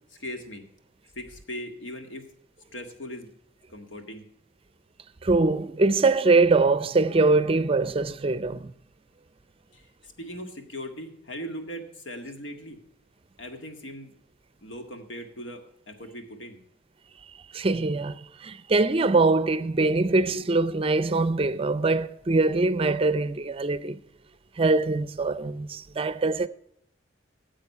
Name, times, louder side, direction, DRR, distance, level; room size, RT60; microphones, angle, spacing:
voice 1, 0.1-0.7 1.2-2.3 2.7-3.3 3.7-4.3 9.7-9.9 10.2-12.8 13.4-14.1 14.6-16.6, equal, 90° left, 1.9 m, -39 dB
voice 2, 5.2-8.7 17.5-24.0 24.6-26.5, right 3 dB, 30° right, 0.5 m, -23 dB
14.5 x 7.6 x 5.5 m
head